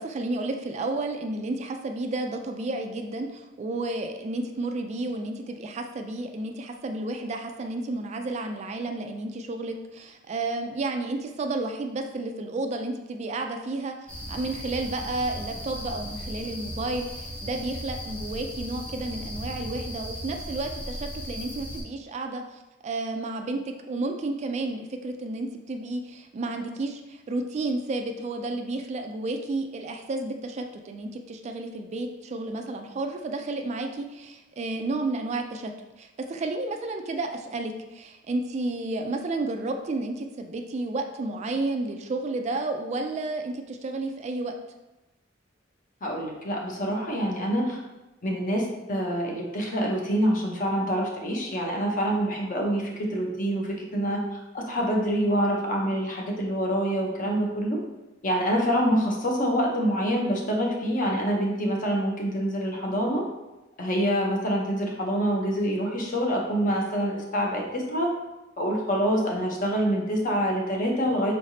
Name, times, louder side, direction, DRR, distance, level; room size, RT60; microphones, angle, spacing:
voice 1, 0.0-14.0 14.3-35.7 36.0-44.6, right 2 dB, 35° right, 5 dB, 0.3 m, -31 dB
sound 1, 14.1-21.8, equal, 5° left, 0.8 m, -37 dB
voice 2, 46.0-47.8 48.2-54.2 54.5-57.8 58.2-63.2 63.8-68.1 68.6-71.3, equal, 45° left, 0 dB, 0.8 m, -26 dB
4.7 x 3.2 x 2.7 m, 1.0 s
head